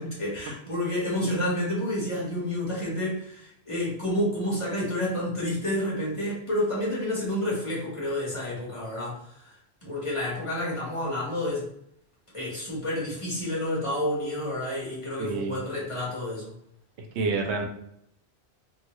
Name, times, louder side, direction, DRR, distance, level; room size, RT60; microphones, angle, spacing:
voice 1, 0.0-9.2 9.8-11.7 12.3-16.5, left 1 dB, 30° left, -6 dB, 1.1 m, -29 dB
voice 2, 15.2-15.6 17.0-17.7, right 3 dB, 90° right, 3 dB, 0.9 m, -28 dB
2.7 x 2.6 x 3.0 m, 0.74 s
omnidirectional pair, 1.1 m